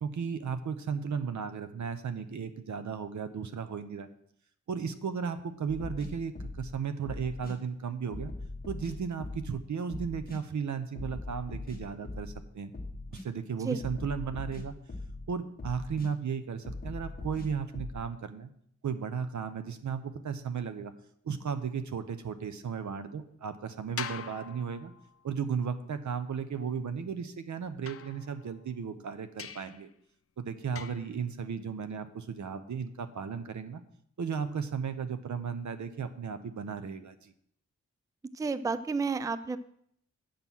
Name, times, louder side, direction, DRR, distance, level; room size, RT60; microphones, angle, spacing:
voice 1, 0.0-4.1 4.7-8.3 8.7-12.7 13.1-14.7 15.3-18.5 18.8-20.9 21.2-24.9 25.2-29.9 30.4-33.8 34.2-37.3, right 6 dB, 80° right, 10 dB, 0.8 m, -35 dB
sound 1, 5.7-6.7 7.0-7.6 8.1-9.6 9.9-10.4 11.0-12.4 12.7-13.3 13.8-15.3 15.6-16.1 16.6-18.0, left 2 dB, 30° left, 1.2 m, -40 dB
sound 2, 24.0-25.3 27.8-28.7 29.4-29.9 30.7-31.2, left 7 dB, 50° left, 0.5 m, -43 dB
voice 2, 38.4-39.6, right 4 dB, 10° right, 13 dB, 0.4 m, -31 dB
8.6 x 5.6 x 6.1 m, 0.67 s
wide cardioid pair, 120°, 29 cm